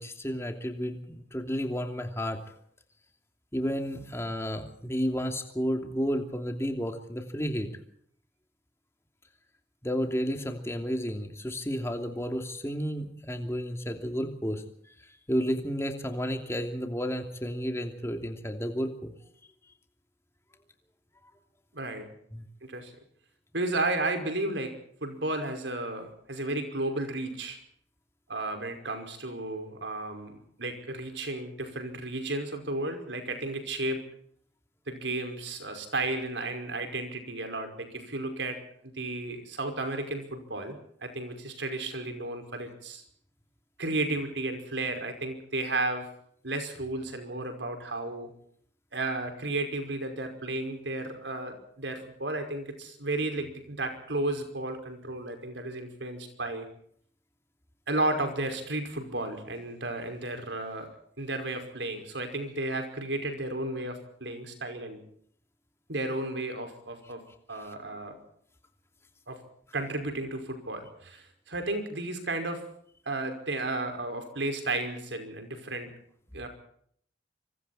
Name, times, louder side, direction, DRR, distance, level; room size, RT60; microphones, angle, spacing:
voice 1, 0.0-2.4 3.5-7.7 9.8-14.6 15.3-19.1 22.3-22.4, equal, 15° left, 4 dB, 2.9 m, -32 dB
voice 2, 21.7-22.1 22.6-22.9 23.5-24.7 25.0-27.6 28.3-34.0 34.9-38.6 38.8-43.0 43.8-46.1 46.4-48.3 48.9-56.7 57.9-60.9 61.2-65.0 65.9-67.2 67.5-68.2 69.3-69.4 69.7-72.6 73.1-75.9 76.3-76.5, right 2 dB, 85° right, 6 dB, 5.5 m, -33 dB
26.0 x 25.0 x 4.3 m, 0.65 s
head